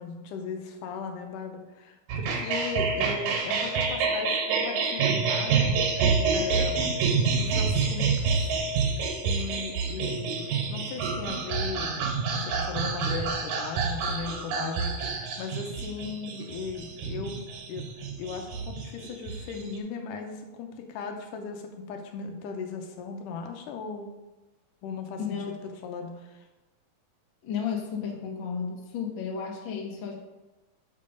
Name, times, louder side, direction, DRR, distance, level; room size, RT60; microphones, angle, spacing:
voice 1, 0.0-5.8 6.3-6.9 7.4-8.6 9.2-17.4 17.7-17.9 18.2-24.1 24.8-25.6 25.8-26.4, left 5 dB, 90° left, 4 dB, 2.4 m, -37 dB
sound 1, 2.1-19.8, right 5 dB, 70° right, 2.2 m, -28 dB
voice 2, 25.2-25.5 27.4-30.1, left 7 dB, 55° left, 1 dB, 1.4 m, -33 dB
7.6 x 5.1 x 5.3 m, 1.1 s
omnidirectional pair, 3.7 m